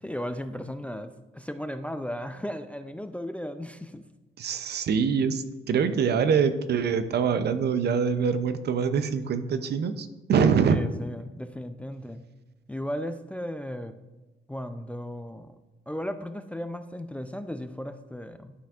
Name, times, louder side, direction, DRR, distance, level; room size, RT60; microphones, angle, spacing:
voice 1, 0.0-4.0 10.7-12.2 12.7-13.9 14.5-15.5 15.9-18.5, equal, 5° left, 9 dB, 0.4 m, -35 dB
voice 2, 4.4-10.8, right 6 dB, 55° right, 11 dB, 0.6 m, -24 dB
11.0 x 5.7 x 2.4 m, 1.1 s
cardioid pair, 90°, 20 cm